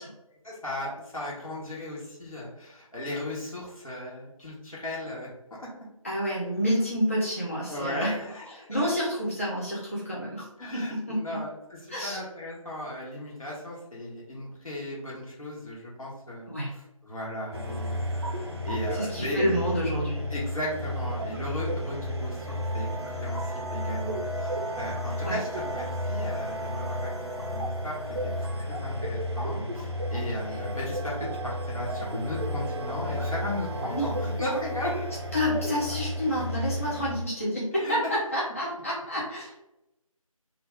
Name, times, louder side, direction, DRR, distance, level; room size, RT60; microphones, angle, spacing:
voice 1, 0.4-5.3 5.6-5.7 7.7-8.9 10.6-18.1 18.6-19.5 20.3-28.0 28.4-35.3 37.8-38.1, left 1 dB, 75° left, -5 dB, 1.0 m, -36 dB
voice 2, 6.0-8.1 8.5-11.4 11.9-12.2 16.5-16.7 18.9-20.2 25.2-25.4 33.9-34.1 35.3-39.5, equal, 25° left, -6 dB, 0.4 m, -29 dB
sound 1, 17.5-37.1, equal, 45° right, 0.5 m, -32 dB
2.3 x 2.2 x 3.5 m, 0.90 s
figure-of-eight pair, 160°, 18 cm